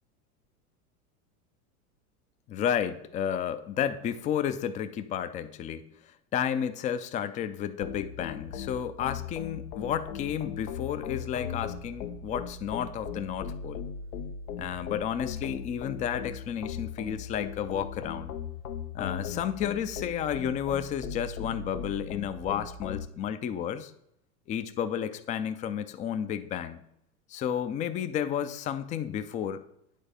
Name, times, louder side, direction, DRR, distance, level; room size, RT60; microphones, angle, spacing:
voice 1, 2.5-5.8 6.3-13.8 14.6-18.4 18.9-23.9 24.5-26.8 27.3-29.6, left 9 dB, 20° left, 11 dB, 0.3 m, -32 dB
sound 1, 7.8-23.1, left 6 dB, 80° left, 0.8 m, -38 dB
9.3 x 4.0 x 5.0 m, 0.76 s
hypercardioid pair, 90°, 44 cm